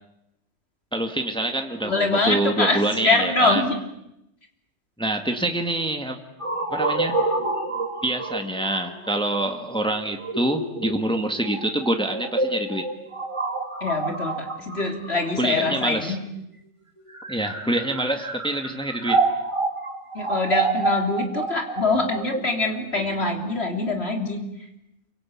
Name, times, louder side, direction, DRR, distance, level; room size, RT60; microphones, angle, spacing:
voice 1, 0.9-3.6 5.0-6.2 6.7-7.2 8.0-12.9 15.4-16.2 17.3-19.2, right 1 dB, 5° left, 5 dB, 1.8 m, -26 dB
voice 2, 1.8-3.8 13.8-16.2 20.1-24.5, left 3 dB, 60° left, 4 dB, 3.6 m, -24 dB
sound 1, 6.4-16.2 17.0-23.9, right 3 dB, 25° right, 3.2 m, -28 dB
28.0 x 24.5 x 8.6 m, 0.85 s
omnidirectional pair, 1.2 m